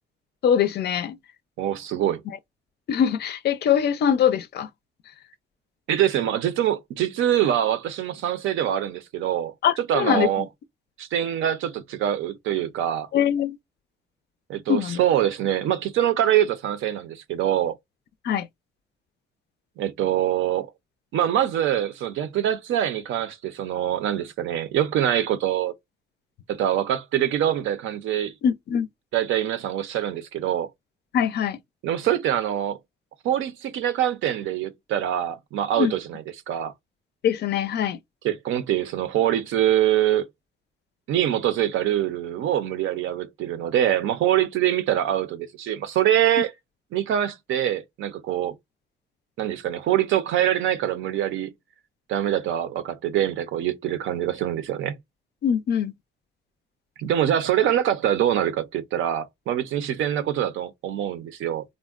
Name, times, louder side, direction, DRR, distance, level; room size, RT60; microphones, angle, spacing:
voice 1, 0.4-1.2 2.9-4.7 9.6-10.5 13.1-13.6 14.7-15.0 18.2-18.5 28.4-28.9 31.1-31.6 35.8-35.9 37.2-38.0 55.4-55.9, left 8 dB, 55° left, 0.4 m, -22 dB
voice 2, 1.6-2.2 5.9-10.5 11.0-13.1 14.5-17.8 19.8-20.7 21.1-25.7 26.5-28.3 29.1-30.7 31.8-32.8 33.2-36.7 38.2-40.2 41.1-46.5 46.9-48.5 49.4-51.5 52.1-54.9 57.0-61.6, right 11 dB, 80° right, 0.5 m, -24 dB
3.6 x 2.0 x 2.3 m
cardioid pair, 90°, 20 cm